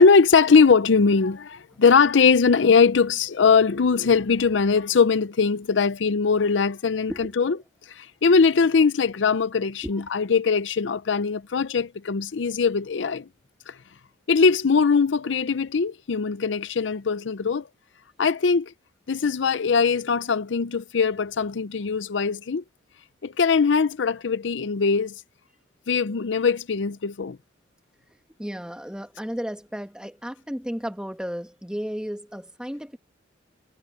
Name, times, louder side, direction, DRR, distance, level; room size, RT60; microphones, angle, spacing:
voice 1, 0.0-7.6 8.0-13.2 13.7-13.8 14.3-17.7 18.2-18.7 19.1-22.6 23.2-25.2 25.9-27.4, left 5 dB, 80° left, 0.6 m, -21 dB
voice 2, 9.8-10.2 28.4-33.0, equal, 5° right, 1.9 m, -34 dB
head